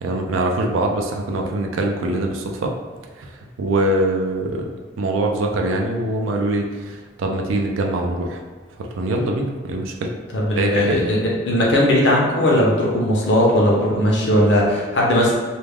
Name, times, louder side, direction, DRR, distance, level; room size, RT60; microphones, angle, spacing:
voice 1, 0.0-2.7 3.2-4.7 5.0-8.4 8.8-10.1 10.6-11.1, right 1 dB, 90° right, 2 dB, 0.4 m, -23 dB
voice 2, 10.3-11.2 11.5-15.3, left 1 dB, 60° left, -3 dB, 0.6 m, -18 dB
2.3 x 2.0 x 3.3 m, 1.4 s
head